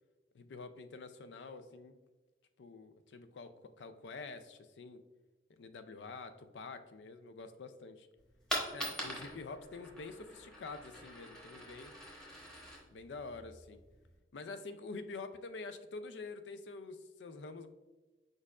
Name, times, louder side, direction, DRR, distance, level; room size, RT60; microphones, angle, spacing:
voice 1, 0.3-2.0 2.6-5.0 5.6-8.1 8.7-11.9 12.9-13.8 14.3-17.7, left 3 dB, 85° left, 11 dB, 0.4 m, -47 dB
Coin (dropping), 8.2-14.2, equal, 5° left, 1.0 m, -44 dB
4.7 x 4.4 x 2.4 m, 1.2 s
head